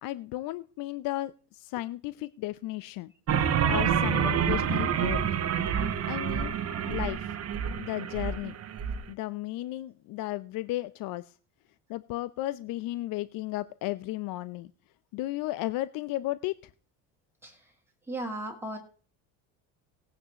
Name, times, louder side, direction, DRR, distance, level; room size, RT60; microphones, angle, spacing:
voice 1, 0.0-3.1 3.6-5.2 6.1-6.6 6.9-7.3 7.8-8.6 9.1-11.2 11.9-14.7 15.1-16.5, left 16 dB, 60° left, 16 dB, 0.6 m, -34 dB
sound 1, 3.3-9.0, right 8 dB, 40° right, 1.1 m, -28 dB
voice 2, 17.4-17.7 18.0-18.8, right 1 dB, 5° right, 0 dB, 2.2 m, -36 dB
18.0 x 9.5 x 2.9 m, 0.39 s
supercardioid pair, 90°, 38 cm